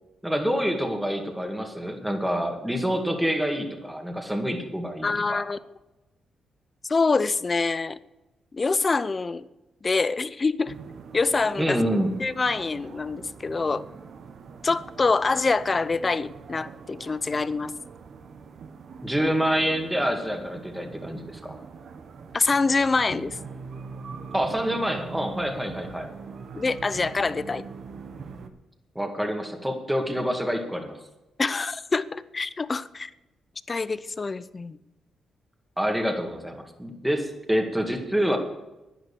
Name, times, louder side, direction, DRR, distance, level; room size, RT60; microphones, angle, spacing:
voice 1, 0.2-5.4 11.6-12.1 19.0-21.6 24.3-26.1 29.0-30.9 35.8-38.4, equal, 5° right, 3 dB, 2.1 m, -27 dB
voice 2, 5.0-5.6 6.8-8.0 8.5-9.5 9.8-10.8 11.1-11.8 12.2-13.9 14.6-17.7 22.3-23.4 26.5-27.6 31.4-33.1 33.7-34.8, left 4 dB, 30° left, 16 dB, 0.6 m, -25 dB
sound 1, 10.7-28.5, right 5 dB, 65° right, 1.2 m, -42 dB
11.0 x 9.8 x 7.1 m, 1.0 s
cardioid pair, 85°, 0 cm